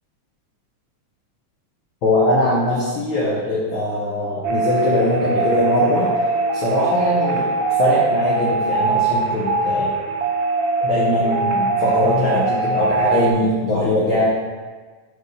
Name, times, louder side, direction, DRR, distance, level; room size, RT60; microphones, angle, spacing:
voice 1, 2.0-6.1 6.5-7.5 7.8-9.9 10.8-14.3, left 1 dB, 65° left, -6 dB, 1.2 m, -21 dB
sound 1, 4.4-13.3, right 3 dB, 75° right, 1.7 m, -21 dB
5.4 x 4.8 x 3.9 m, 1.4 s
omnidirectional pair, 3.5 m